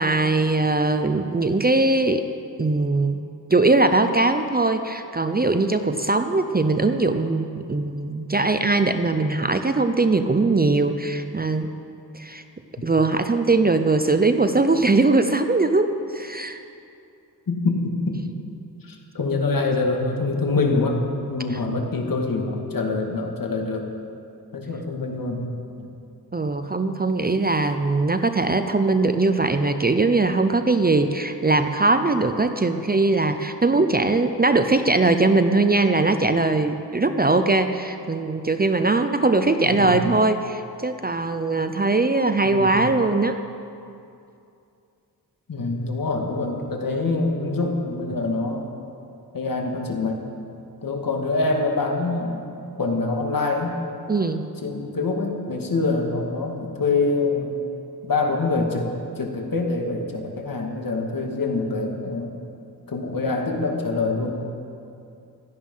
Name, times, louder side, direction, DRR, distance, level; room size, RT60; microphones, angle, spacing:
voice 1, 0.0-2.2 2.6-3.2 3.5-11.7 12.1-12.4 12.8-16.6 21.5-21.6 26.3-43.4 54.1-54.5, right 3 dB, 25° right, 8 dB, 0.7 m, -21 dB
voice 2, 17.5-18.2 18.8-21.0 21.3-23.9 24.5-25.5 25.8-25.9 39.6-40.0 42.5-42.8 45.5-48.7 49.3-50.4 50.8-52.5 52.8-53.7 54.6-57.5 58.0-58.9 59.2-62.3 62.9-64.4, left 3 dB, 55° left, 1 dB, 2.3 m, -25 dB
16.5 x 13.0 x 5.7 m, 2.6 s
wide cardioid pair, 85°, 39 cm